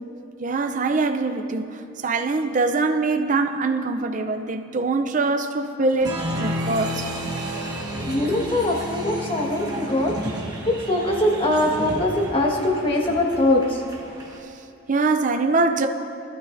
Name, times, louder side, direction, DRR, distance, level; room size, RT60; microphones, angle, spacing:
voice 1, 0.4-7.1 14.9-15.9, right 3 dB, 40° right, 0.5 m, -23 dB
Applause, 6.0-14.4, equal, 20° right, 1.4 m, -32 dB
voice 2, 7.9-13.8, left 1 dB, 25° left, 1.5 m, -22 dB
24.0 x 12.5 x 2.6 m
head